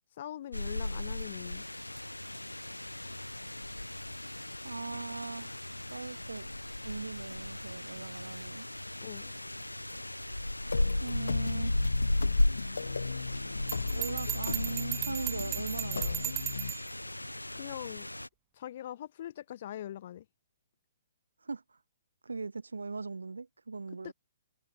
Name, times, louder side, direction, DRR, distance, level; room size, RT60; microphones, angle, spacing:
voice 1, 0.2-1.6 9.0-9.3 17.6-18.1 18.6-20.2 24.0-24.1, left 11 dB, 45° left, 1.5 m, -42 dB
sound 1, 0.5-18.3, left 1 dB, 85° left, 1.8 m, -36 dB
voice 2, 4.6-5.6 5.9-6.5 6.8-8.7 11.0-11.8 12.6-12.7 13.9-16.3 21.4-21.8 22.2-24.1, right 4 dB, 70° right, 0.8 m, -39 dB
sound 2, 10.7-16.7, left 5 dB, 65° left, 0.4 m, -36 dB
Bell, 13.7-16.9, right 16 dB, 20° right, 0.9 m, -37 dB
figure-of-eight pair, 125°, 0 cm